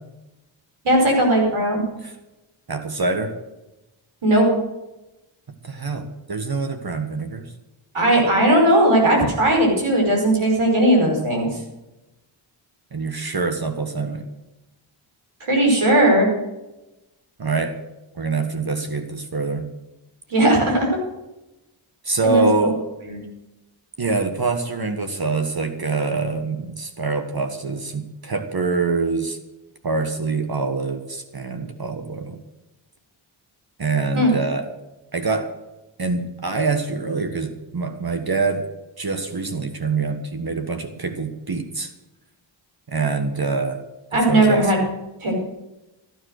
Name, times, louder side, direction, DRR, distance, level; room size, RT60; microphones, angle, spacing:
voice 1, 0.8-1.8 4.2-4.5 7.9-11.5 15.4-16.3 20.3-20.9 22.2-22.5 23.1-23.2 34.1-34.3 44.1-44.8 45.2-45.4, right 1 dB, 75° right, 0 dB, 5.5 m, -17 dB
voice 2, 2.7-3.4 5.6-7.5 12.9-14.2 17.4-17.8 18.1-19.7 22.0-22.8 24.0-29.4 29.8-32.4 33.8-34.7 35.1-35.5 36.0-38.7 39.0-41.9 42.9-43.8 44.1-44.7, right 3 dB, 45° right, 7 dB, 1.6 m, -25 dB
14.5 x 9.7 x 6.5 m, 0.98 s
cardioid pair, 50°, 49 cm